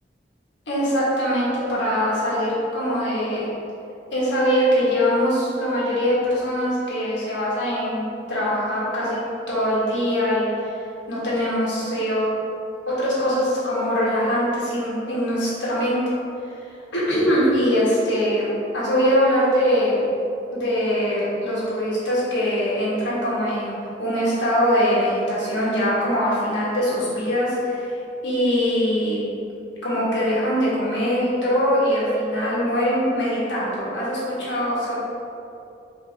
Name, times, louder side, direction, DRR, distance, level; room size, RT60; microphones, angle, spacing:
voice 1, 0.7-3.5 4.1-9.2 9.5-10.8 11.1-12.3 12.9-16.0 16.5-16.6 16.9-20.0 20.5-27.9 28.2-29.2 29.8-34.9, equal, 80° left, -8 dB, 1.5 m, -22 dB
5.1 x 3.0 x 3.3 m, 2.8 s
head